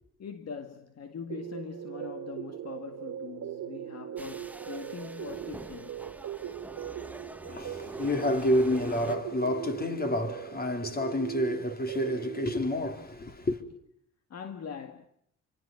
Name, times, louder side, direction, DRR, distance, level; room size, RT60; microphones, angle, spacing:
voice 1, 0.2-6.1 14.3-15.1, left 6 dB, 55° left, 2.0 m, -42 dB
sound 1, 1.3-12.6, right 10 dB, 65° right, 1.8 m, -40 dB
sound 2, 4.2-9.1, right 2 dB, 5° right, 1.6 m, -44 dB
voice 2, 7.4-13.6, left 1 dB, 30° left, 4.3 m, -29 dB
27.5 x 25.5 x 5.9 m
cardioid pair, 90°, 30 cm